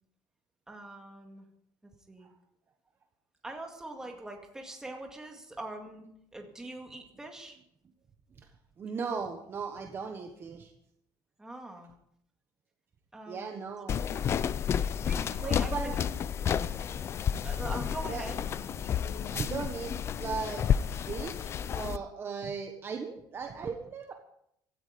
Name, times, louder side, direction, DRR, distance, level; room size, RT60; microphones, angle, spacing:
voice 1, 0.7-1.5 1.8-2.3 3.4-7.6 11.4-11.9 13.1-13.6 14.8-16.2 17.4-18.4, right 2 dB, 5° right, 2 dB, 2.1 m, -43 dB
voice 2, 8.8-10.7 13.3-14.0 15.4-16.0 16.9-17.0 18.1-18.3 19.2-24.1, right 5 dB, 25° right, 4 dB, 1.3 m, -37 dB
sound 1, 13.9-22.0, left 8 dB, 30° left, 0.5 m, -31 dB
16.5 x 13.5 x 5.2 m, 0.74 s
cardioid pair, 170°, 9 cm